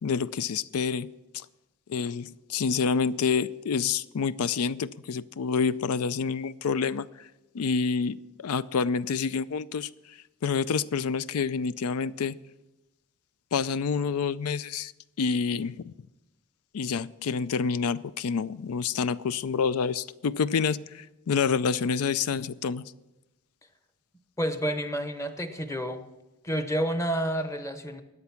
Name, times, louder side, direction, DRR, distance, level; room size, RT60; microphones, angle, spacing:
voice 1, 0.0-1.5 1.9-7.3 7.5-12.4 13.5-14.9 15.2-15.9 16.7-22.8, left 5 dB, 85° left, 18 dB, 0.4 m, -28 dB
voice 2, 24.4-26.1 26.4-28.0, equal, 15° left, 8 dB, 0.8 m, -29 dB
14.0 x 9.5 x 5.8 m, 0.99 s
head